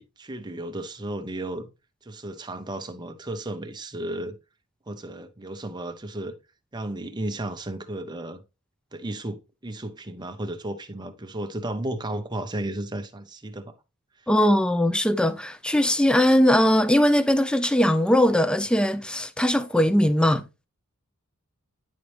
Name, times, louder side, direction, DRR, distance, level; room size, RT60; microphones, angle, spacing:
voice 1, 0.0-1.7 2.0-4.4 4.9-6.3 6.7-8.4 8.9-13.7, right 1 dB, 20° right, 0.7 m, -34 dB
voice 2, 14.3-20.5, left 1 dB, 5° left, 0.4 m, -20 dB
10.0 x 4.1 x 3.2 m
head